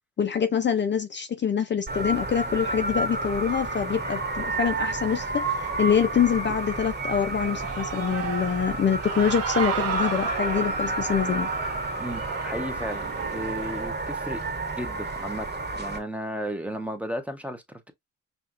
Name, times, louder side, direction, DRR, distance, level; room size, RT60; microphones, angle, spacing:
voice 1, 0.2-5.5 5.8-11.5, left 7 dB, 35° left, 0.6 m, -25 dB
sound 1, 1.9-16.0, right 2 dB, 35° right, 1.7 m, -31 dB
Human voice / Cheering, 7.3-13.9, right 7 dB, 55° right, 0.9 m, -34 dB
voice 2, 12.0-14.4 14.8-15.5 15.7-17.9, equal, 5° right, 1.0 m, -34 dB
5.6 x 2.5 x 2.5 m
cardioid pair, 90°, 30 cm